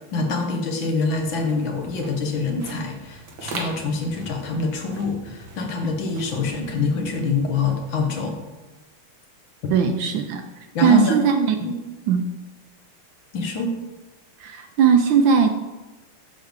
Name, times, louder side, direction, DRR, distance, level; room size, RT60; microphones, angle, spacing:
voice 1, 0.1-8.4 9.6-9.7 10.7-11.2 11.6-11.8 13.3-13.7, left 4 dB, 65° left, 3 dB, 1.7 m, -25 dB
sound 1, 1.1-8.3, right 2 dB, 55° right, 1.6 m, -41 dB
voice 2, 9.7-10.4 10.8-11.6 12.1-12.3 14.4-15.5, right 7 dB, 75° right, 6 dB, 1.1 m, -18 dB
8.1 x 3.3 x 6.4 m, 1.2 s
omnidirectional pair, 2.4 m